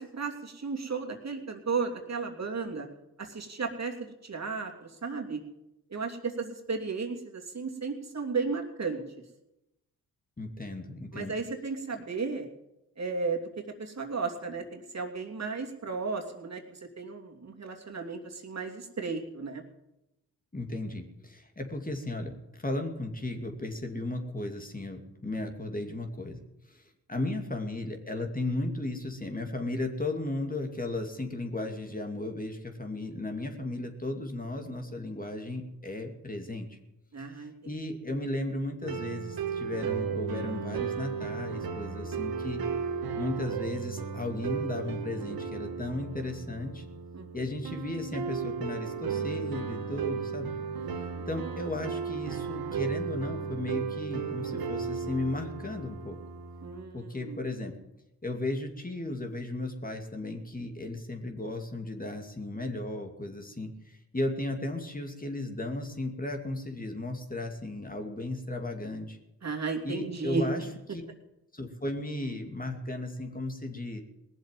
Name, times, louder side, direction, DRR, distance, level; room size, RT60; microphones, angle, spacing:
voice 1, 0.0-2.9 3.2-5.4 5.9-9.0 11.1-12.5 13.0-13.5 13.8-16.6 17.0-19.6 37.1-37.5 47.1-47.3 51.0-51.3 56.6-57.4 69.4-70.5, right 4 dB, 45° right, 2 dB, 2.9 m, -34 dB
voice 2, 10.4-11.3 20.5-26.4 26.7-36.8 37.3-42.6 43.2-46.8 47.3-50.5 51.3-56.2 56.9-57.7 58.2-69.2 69.8-70.6 70.9-71.0 71.5-74.0, left 2 dB, 20° left, 3 dB, 2.6 m, -35 dB
sound 1, 38.8-56.8, right 6 dB, 70° right, 1.6 m, -35 dB
18.5 x 7.4 x 9.1 m, 0.92 s
supercardioid pair, 50°, 37 cm